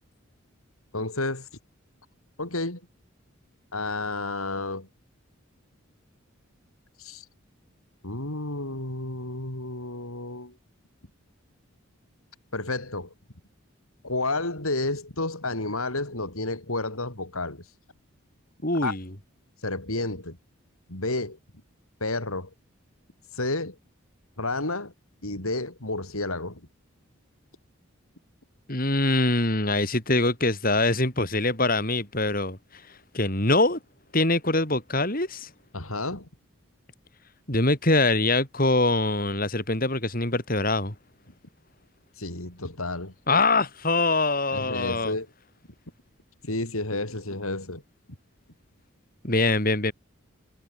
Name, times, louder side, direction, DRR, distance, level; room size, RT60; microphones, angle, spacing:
voice 1, 0.9-1.5 2.4-2.8 3.7-4.9 7.0-7.3 8.0-10.5 12.5-13.1 14.0-17.6 18.8-19.0 19.6-20.4 20.9-21.4 22.0-22.5 23.3-23.8 24.4-24.9 25.2-26.6 35.7-36.3 42.2-43.1 44.5-45.3 46.4-47.8, left 2 dB, 85° left, 5.8 m, -31 dB
voice 2, 18.6-19.1 28.7-32.8 33.1-33.8 34.1-35.5 37.5-40.9 43.3-45.2 49.2-49.9, left 2 dB, 40° left, 5.4 m, -24 dB
head